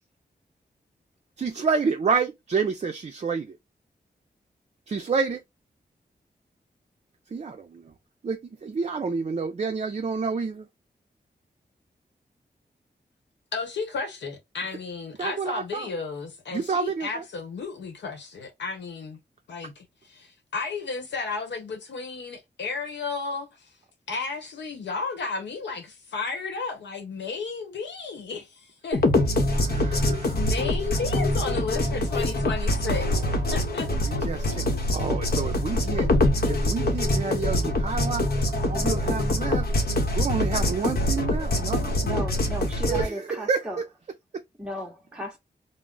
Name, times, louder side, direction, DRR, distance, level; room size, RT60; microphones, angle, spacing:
voice 1, 1.4-3.6 4.9-5.4 7.3-7.9 8.2-10.6 15.2-15.9 16.5-17.1 29.4-30.4 33.1-33.6 33.9-34.6 34.9-36.1 36.5-38.2 38.6-39.7 40.2-42.0 42.9-43.9, right 5 dB, 40° right, 0.4 m, -29 dB
voice 2, 13.5-19.2 19.5-23.5 24.1-29.1 29.8-33.9, left 4 dB, 90° left, 0.9 m, -33 dB
sound 1, 28.9-43.0, left 1 dB, 60° left, 0.9 m, -24 dB
voice 3, 42.0-43.8 44.6-45.4, equal, 5° right, 0.7 m, -35 dB
2.3 x 2.0 x 3.7 m
cardioid pair, 45°, 18 cm